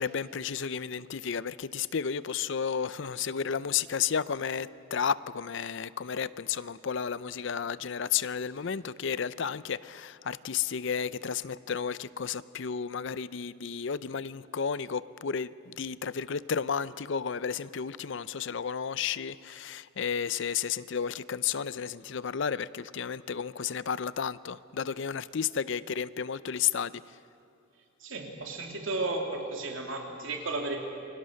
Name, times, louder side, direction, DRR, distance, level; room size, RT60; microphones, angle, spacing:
voice 1, 0.0-27.0, left 7 dB, 60° left, 17 dB, 0.5 m, -32 dB
voice 2, 28.0-30.8, right 2 dB, 65° right, 2 dB, 3.1 m, -34 dB
28.5 x 23.5 x 6.5 m, 2.6 s
head